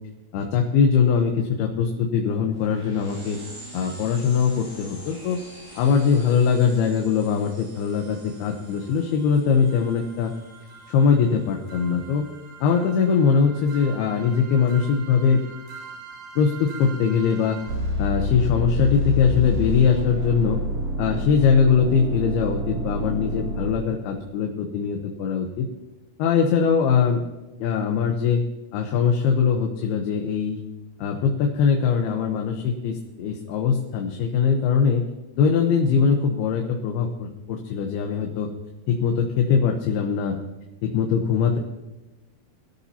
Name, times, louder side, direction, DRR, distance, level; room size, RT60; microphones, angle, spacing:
voice 1, 0.3-3.4 3.7-5.4 5.8-10.3 10.9-12.3 12.6-15.4 16.4-17.6 18.0-20.6 21.0-25.7 26.2-27.2 27.6-28.4 28.7-30.6 31.0-35.0 35.4-38.5 38.9-40.4 40.8-41.6, left 6 dB, 85° left, 2 dB, 2.9 m, -21 dB
sound 1, 2.5-12.6, right 1 dB, 90° right, 7.2 m, -46 dB
sound 2, 7.9-8.0 8.7-8.8 9.1-9.2 9.7-24.1, equal, 65° right, 4.9 m, -31 dB
23.0 x 13.0 x 2.8 m, 1.0 s
omnidirectional pair, 4.4 m